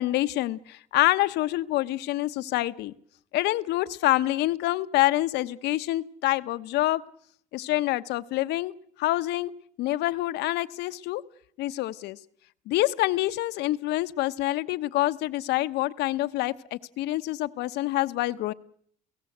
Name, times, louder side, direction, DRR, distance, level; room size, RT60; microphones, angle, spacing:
voice 1, 0.0-2.9 3.3-7.0 7.5-8.7 9.0-9.5 9.8-11.2 11.6-12.2 12.7-18.5, left 16 dB, 85° left, 13 dB, 1.0 m, -26 dB
29.0 x 17.0 x 7.9 m, 0.66 s
cardioid pair, 110°, 17 cm